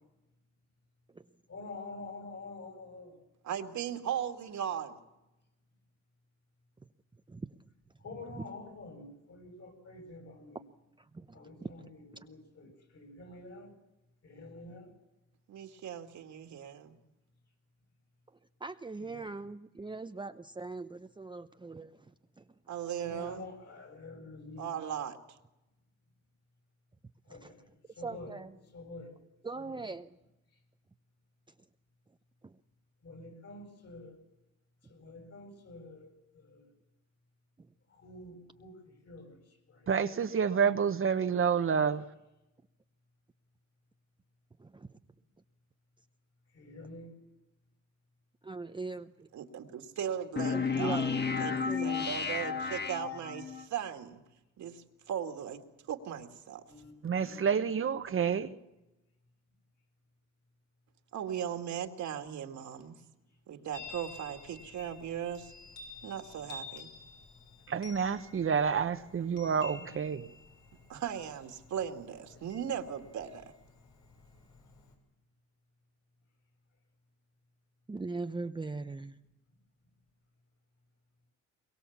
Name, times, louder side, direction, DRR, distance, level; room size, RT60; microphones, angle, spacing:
voice 1, 1.5-3.2 8.0-10.6 11.3-11.9 12.2-13.7 14.2-14.9 19.1-19.3 23.0-24.8 27.3-27.7 28.0-28.3 28.7-29.1 29.6-29.8 33.0-34.1 34.9-36.6 38.0-39.4 39.7-39.9 46.5-47.1 56.7-57.4 69.8-70.0 72.3-72.5, left 2 dB, 55° left, 7.8 m, -48 dB
voice 2, 3.4-5.0 15.5-17.0 22.7-23.4 24.6-25.2 49.3-51.0 51.4-54.2 54.6-55.6 55.9-56.6 61.1-62.9 63.5-65.5 66.0-66.9 70.9-73.5, right 9 dB, 70° right, 2.3 m, -38 dB
voice 3, 11.0-11.7 18.6-22.4 27.3-27.5 28.0-28.6 29.4-30.2 32.4-32.6 44.6-45.0 48.4-49.3 50.5-52.1 77.9-79.2, right 3 dB, 15° right, 0.7 m, -41 dB
voice 4, 39.9-42.0 57.0-58.6 67.7-70.2, right 6 dB, 45° right, 1.1 m, -29 dB
sound 1, 50.4-53.6, left 5 dB, 35° left, 1.6 m, -32 dB
Chime, 63.7-74.9, left 3 dB, 80° left, 6.0 m, -51 dB
22.5 x 22.5 x 7.3 m
cardioid pair, 90°, 30 cm